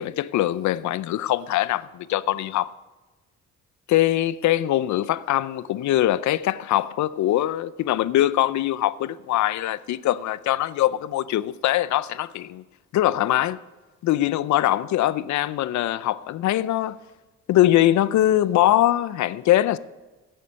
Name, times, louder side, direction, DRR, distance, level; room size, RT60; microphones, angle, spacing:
voice 1, 0.0-2.7 3.9-12.6 12.9-13.6 14.0-17.0 17.5-19.8, left 14 dB, 70° left, 0.5 m, -22 dB
15.5 x 6.6 x 5.3 m
cardioid pair, 90°, 30 cm